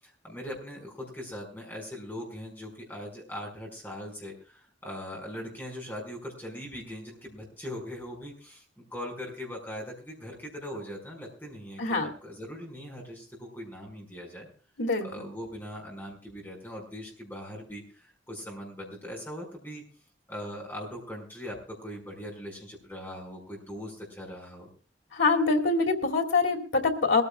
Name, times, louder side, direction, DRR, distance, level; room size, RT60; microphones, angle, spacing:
voice 1, 0.2-14.5 15.0-19.8 20.3-24.7, equal, 10° left, -1 dB, 5.2 m, -40 dB
voice 2, 11.8-12.1 14.8-15.1 25.1-27.2, left 3 dB, 90° left, 2 dB, 2.4 m, -24 dB
22.0 x 15.0 x 2.3 m, 0.38 s
head